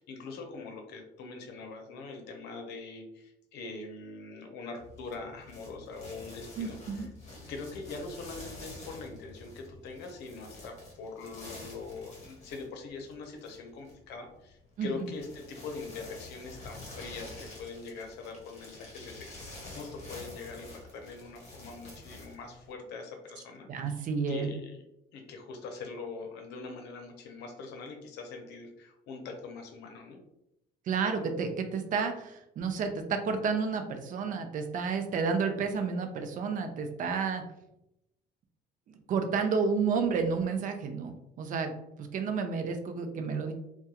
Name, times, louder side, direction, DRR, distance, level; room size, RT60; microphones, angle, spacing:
voice 1, 0.0-7.1 7.5-24.8 25.1-30.2, left 4 dB, 80° left, 3 dB, 0.6 m, -43 dB
sound 1, 4.8-22.7, left 2 dB, 45° left, 0.9 m, -48 dB
voice 2, 6.6-7.1 14.8-15.1 23.7-24.5 30.9-37.4 38.9-43.5, right 5 dB, 50° right, 6 dB, 0.5 m, -31 dB
2.3 x 2.2 x 2.8 m, 0.84 s
cardioid pair, 110°, 17 cm